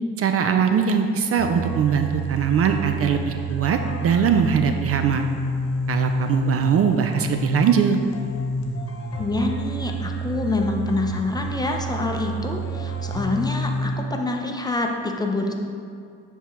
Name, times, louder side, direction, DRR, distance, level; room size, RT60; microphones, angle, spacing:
voice 1, 0.2-5.2 5.9-8.0, right 7 dB, 50° right, 6 dB, 0.4 m, -21 dB
sound 1, 1.4-13.9, right 1 dB, 50° left, 1.0 m, -29 dB
voice 2, 9.2-15.5, left 2 dB, 15° left, 2 dB, 0.6 m, -26 dB
9.9 x 3.6 x 3.1 m, 2.3 s
cardioid pair, 90°, 30 cm